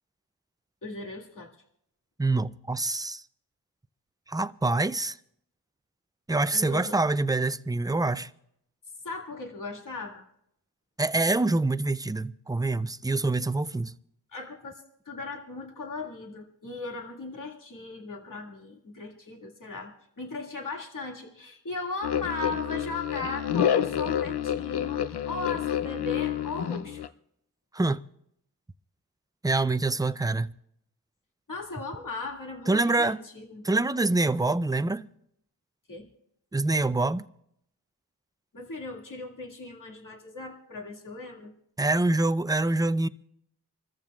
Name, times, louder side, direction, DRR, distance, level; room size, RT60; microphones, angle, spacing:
voice 1, 0.8-1.5 6.5-7.0 9.0-10.2 14.3-27.1 31.5-33.6 35.9-36.1 38.5-41.5, left 3 dB, 55° left, 2.2 m, -37 dB
voice 2, 2.2-3.2 4.3-5.2 6.3-8.3 11.0-13.9 27.7-28.0 29.4-30.5 32.7-33.2 33.6-35.1 36.5-37.3 41.8-43.1, right 2 dB, 10° right, 0.4 m, -25 dB
sound 1, 22.0-27.1, left 9 dB, 80° left, 0.6 m, -28 dB
27.0 x 14.0 x 2.4 m
cardioid pair, 45°, 39 cm